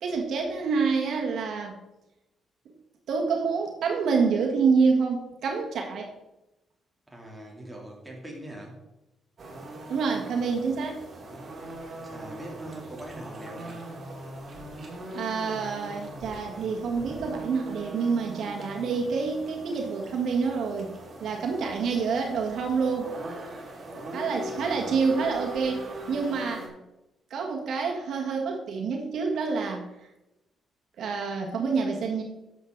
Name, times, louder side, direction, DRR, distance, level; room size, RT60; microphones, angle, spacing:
voice 1, 0.0-1.8 3.1-6.1 9.9-11.0 15.1-20.9 21.2-23.2 24.1-26.7 27.3-29.9 31.0-32.2, right 5 dB, 70° right, 1 dB, 1.6 m, -27 dB
voice 2, 7.1-8.8 12.0-13.9 24.5-25.1, right 1 dB, 5° right, -2 dB, 3.1 m, -42 dB
sound 1, 9.4-26.7, right 1 dB, 40° right, 2.8 m, -41 dB
11.0 x 7.5 x 4.0 m, 0.94 s
cardioid pair, 110°, 0 cm